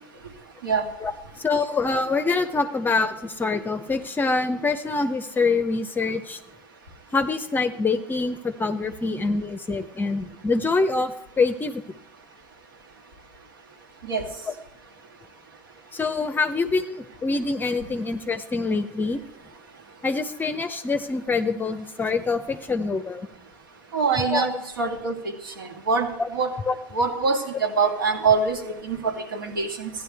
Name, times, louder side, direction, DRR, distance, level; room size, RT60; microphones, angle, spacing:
voice 1, 1.4-6.4 7.1-11.8 14.5-14.6 15.9-19.2 20.0-23.3 24.3-24.5 26.2-26.3 26.6-26.8, left 3 dB, 20° left, 9 dB, 0.6 m, -25 dB
voice 2, 23.9-24.5 24.8-25.1 25.6-26.5 27.0-28.6 28.8-29.9, right 5 dB, 85° right, 4 dB, 1.7 m, -24 dB
14.5 x 10.0 x 3.5 m, 0.86 s
hypercardioid pair, 100°, 11 cm